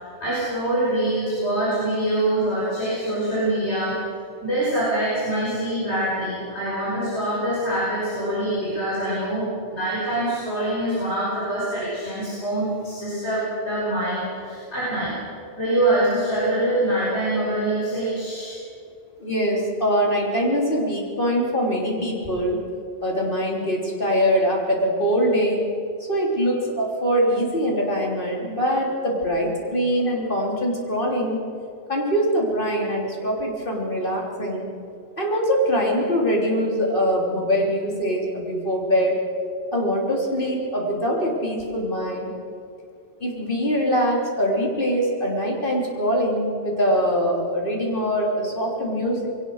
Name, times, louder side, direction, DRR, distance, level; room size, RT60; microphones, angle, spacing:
voice 1, 0.0-4.0 4.4-15.2 15.6-18.6, right 1 dB, 65° left, -8 dB, 5.9 m, -24 dB
voice 2, 19.2-22.6 23.0-25.7 26.1-31.4 31.9-34.7 35.2-39.2 39.7-42.3 43.2-49.3, equal, 45° left, -1 dB, 3.6 m, -23 dB
22.0 x 18.0 x 6.5 m, 2.4 s
omnidirectional pair, 1.2 m